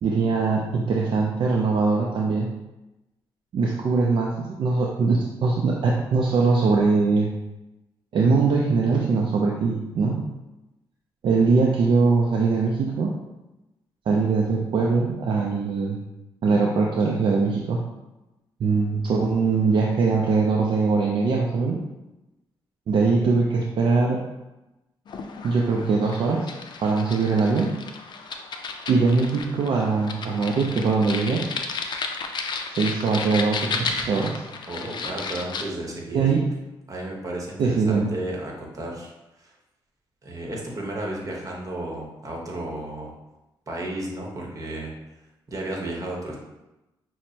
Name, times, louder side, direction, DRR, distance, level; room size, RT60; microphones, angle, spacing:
voice 1, 0.0-2.5 3.5-7.3 8.1-10.2 11.2-13.1 14.1-16.0 16.4-17.9 18.6-21.8 22.9-24.3 25.4-26.5 26.8-27.8 28.9-31.5 32.8-34.4 36.1-36.4 37.6-38.1, right 4 dB, 60° right, -1 dB, 0.4 m, -22 dB
sound 1, 25.1-35.7, left 4 dB, 55° left, 0.4 m, -33 dB
voice 2, 34.7-36.2 36.9-39.5 40.2-43.1 43.7-44.9 45.5-46.4, right 1 dB, 40° right, -1 dB, 1.0 m, -33 dB
6.0 x 2.1 x 2.7 m, 1.0 s
cardioid pair, 90°, 9 cm